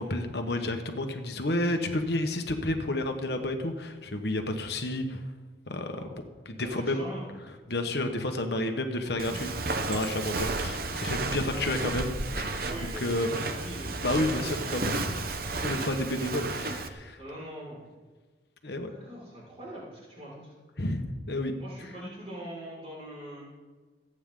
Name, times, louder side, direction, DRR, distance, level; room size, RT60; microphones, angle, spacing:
voice 1, 0.0-5.2 5.7-7.0 7.7-9.5 9.9-12.6 13.0-13.3 14.0-15.3 15.6-17.2 18.6-18.9 20.8-21.5, left 1 dB, 60° left, 5 dB, 1.3 m, -31 dB
voice 2, 6.6-7.2 11.5-11.8 12.6-14.8 16.2-16.3 17.2-17.8 18.8-20.5 21.6-23.5, right 1 dB, 35° right, -6 dB, 5.4 m, -42 dB
Walk footsteps, 9.2-16.9, right 3 dB, 50° right, 0.9 m, -32 dB
26.5 x 9.0 x 3.9 m, 1.3 s
head